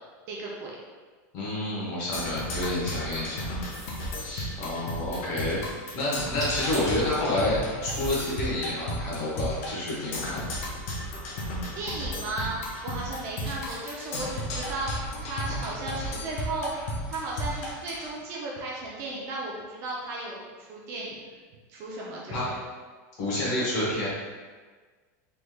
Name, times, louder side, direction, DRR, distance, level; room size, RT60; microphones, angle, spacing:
voice 1, 0.3-0.8 11.8-21.4 21.7-22.6, right 2 dB, 30° right, -4 dB, 0.4 m, -35 dB
voice 2, 1.3-3.4 4.1-5.6 5.9-10.5 22.3-22.5 23.2-24.1, left 1 dB, 40° left, -7 dB, 1.1 m, -29 dB
Percussion, 2.1-18.1, left 1 dB, 55° left, 0.6 m, -34 dB
sound 1, 3.7-4.2 6.1-6.2 6.4-7.0 7.8-8.4 9.0-10.5 13.4-14.0, right 1 dB, ahead, 1.2 m, -42 dB
3.4 x 3.0 x 2.2 m, 1.4 s
supercardioid pair, 175°, 9 cm